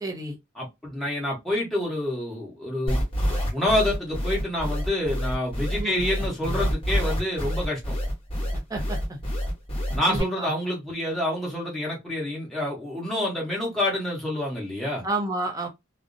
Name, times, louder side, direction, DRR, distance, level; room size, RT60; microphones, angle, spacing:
voice 1, 0.0-0.4 5.8-6.0 8.7-9.2 10.1-10.5 15.0-15.7, right 2 dB, 15° right, 0.5 m, -30 dB
voice 2, 0.6-3.0 3.5-7.9 9.9-15.0, left 1 dB, ahead, 1.0 m, -27 dB
sound 1, 2.9-10.2, equal, 25° left, 1.0 m, -27 dB
2.5 x 2.0 x 2.5 m
head